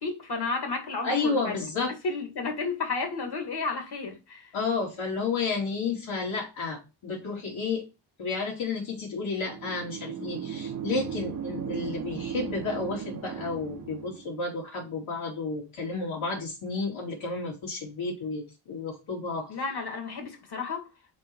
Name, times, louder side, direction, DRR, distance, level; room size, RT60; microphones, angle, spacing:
voice 1, 0.0-1.6 2.0-4.5 19.5-20.9, left 4 dB, 50° left, 2.0 m, -32 dB
voice 2, 1.0-1.9 4.5-7.8 8.2-19.5, left 4 dB, 75° left, 3.0 m, -31 dB
sound 1, 9.4-14.4, right 7 dB, 40° right, 0.8 m, -36 dB
5.2 x 4.3 x 4.5 m
cardioid pair, 80°, 49 cm